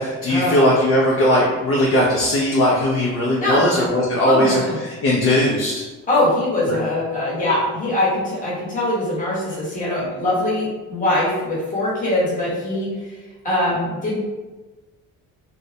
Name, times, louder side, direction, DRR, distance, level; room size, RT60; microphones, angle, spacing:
voice 1, 0.0-5.8 6.7-6.8, left 1 dB, 45° left, -4 dB, 0.5 m, -18 dB
voice 2, 4.2-4.8 6.1-13.2 13.4-14.2, left 1 dB, 25° left, -7 dB, 1.0 m, -22 dB
2.3 x 2.0 x 2.7 m, 1.2 s
cardioid pair, 135°, 31 cm